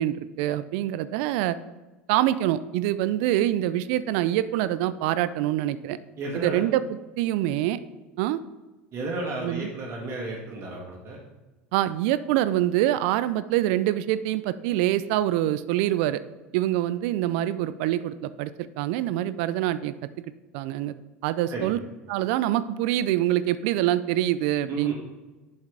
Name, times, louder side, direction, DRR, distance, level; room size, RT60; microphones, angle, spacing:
voice 1, 0.0-1.6 2.1-6.0 6.3-6.8 7.2-7.8 8.2-8.4 9.4-9.7 11.7-16.2 16.5-19.9 20.5-21.8 22.1-24.9, right 13 dB, 60° right, 14 dB, 0.4 m, -25 dB
voice 2, 6.2-6.6 8.9-11.2 21.5-21.7 24.7-24.9, right 2 dB, 40° right, -2 dB, 1.5 m, -33 dB
7.7 x 5.4 x 3.7 m, 1.1 s
hypercardioid pair, 80°, 7 cm